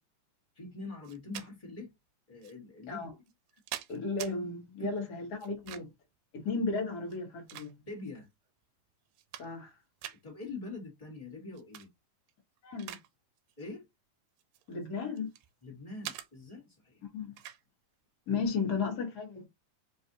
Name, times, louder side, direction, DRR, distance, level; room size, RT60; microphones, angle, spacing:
voice 1, 0.5-1.9 2.3-3.1 4.8-4.9 7.9-8.3 10.2-11.9 13.6-13.8 15.6-17.0, left 3 dB, 30° left, 0.7 m, -44 dB
sound 1, 1.0-1.5 2.4-2.5 3.3-4.3 5.4-6.0 7.0-8.1 8.6-8.7 9.1-9.7 10.0-10.2 11.5-11.9 12.3-13.1 13.4-13.6 14.4-15.5 16.0-16.3 17.4-17.6, right 13 dB, 80° right, 1.9 m, -44 dB
voice 2, 3.9-5.9 6.3-7.8 9.4-9.8 12.6-13.0 14.7-15.3 17.1-17.3 18.3-19.5, left 4 dB, 50° left, 1.3 m, -34 dB
4.7 x 2.5 x 2.7 m
omnidirectional pair, 3.5 m